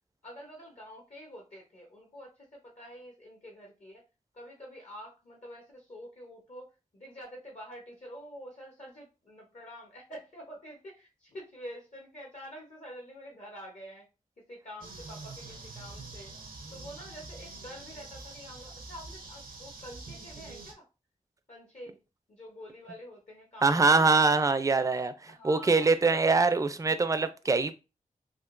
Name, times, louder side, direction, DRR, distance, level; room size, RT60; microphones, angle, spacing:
voice 1, 0.2-4.0 4.3-14.0 14.4-16.3 16.7-20.9 21.5-22.0 22.3-24.2 25.3-26.6, equal, 55° left, 0.9 m, -47 dB
sound 1, 14.8-20.7, right 3 dB, 85° right, 0.6 m, -45 dB
voice 2, 23.6-25.1 25.4-27.7, right 3 dB, 25° right, 0.4 m, -23 dB
3.6 x 2.5 x 2.5 m
cardioid pair, 55°, 14 cm